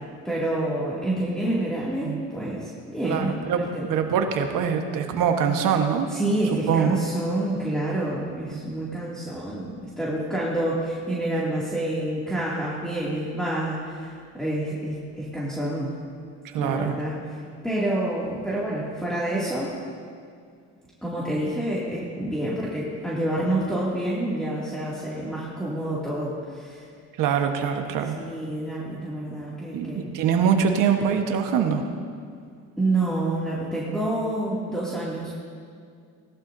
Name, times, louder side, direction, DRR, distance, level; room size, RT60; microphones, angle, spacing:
voice 1, 0.2-3.8 6.1-16.0 16.6-19.7 21.0-26.8 28.2-30.1 32.8-35.3, right 1 dB, ahead, -8 dB, 2.4 m, -28 dB
voice 2, 3.0-3.6 3.9-6.1 6.7-7.0 8.5-8.6 16.5-17.0 27.2-28.1 29.7-31.8, right 7 dB, 75° right, 5 dB, 1.3 m, -23 dB
18.0 x 12.5 x 2.7 m, 2.2 s
cardioid pair, 100°, 32 cm